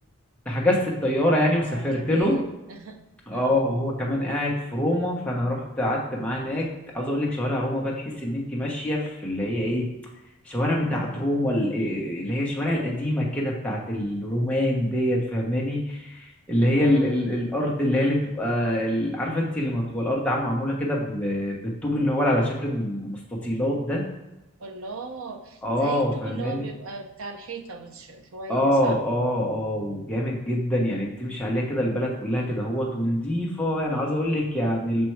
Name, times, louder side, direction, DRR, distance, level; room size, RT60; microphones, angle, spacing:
voice 1, 0.4-2.4 3.3-6.7 6.9-9.9 10.4-21.6 21.8-24.1 25.6-26.6 28.5-35.0, left 1 dB, 5° left, -4 dB, 1.1 m, -25 dB
voice 2, 1.6-2.4 2.7-3.0 3.3-3.6 16.7-17.2 24.6-29.0, right 3 dB, 70° right, 5 dB, 0.7 m, -38 dB
6.1 x 4.4 x 4.6 m, 0.98 s
head